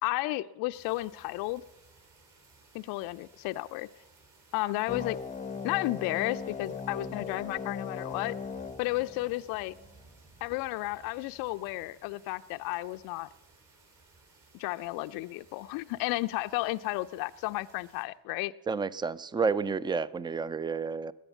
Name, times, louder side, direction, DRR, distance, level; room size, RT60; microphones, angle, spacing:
voice 1, 0.0-1.6 2.7-3.9 4.5-5.2 5.6-8.4 8.8-9.7 10.4-13.3 14.5-18.5, left 19 dB, 50° left, 10 dB, 0.5 m, -33 dB
sound 1, 0.7-18.0, right 3 dB, 40° right, 4.9 m, -59 dB
sound 2, 4.9-9.9, left 5 dB, 15° left, 0.7 m, -39 dB
voice 2, 18.7-21.1, right 5 dB, 10° right, 20 dB, 0.4 m, -30 dB
20.0 x 8.9 x 6.9 m, 1.0 s
figure-of-eight pair, 55°, 46 cm